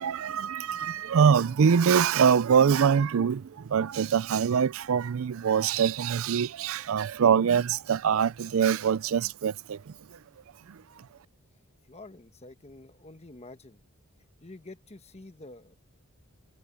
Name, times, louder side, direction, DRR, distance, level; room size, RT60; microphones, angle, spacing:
voice 1, 0.0-3.4 3.7-9.5, right 7 dB, 65° right, 0.4 m, -23 dB
voice 2, 11.9-13.8 14.4-15.8, left 2 dB, 30° left, 1.3 m, -48 dB
head